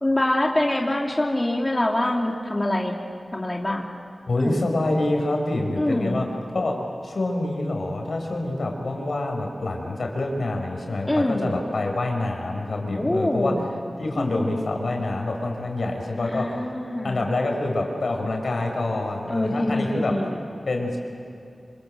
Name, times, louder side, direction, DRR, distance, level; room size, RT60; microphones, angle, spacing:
voice 1, 0.0-2.9 3.3-3.8 4.4-4.5 5.8-6.2 11.1-11.5 13.0-13.6 14.2-14.9 16.2-17.2 19.3-20.4, left 1 dB, 25° left, -1 dB, 2.9 m, -25 dB
voice 2, 4.3-6.7 7.0-13.5 14.0-16.8 17.0-20.1 20.7-21.0, left 2 dB, 80° left, 2 dB, 5.2 m, -26 dB
27.5 x 27.0 x 7.8 m, 2.5 s
wide cardioid pair, 65°, 0 cm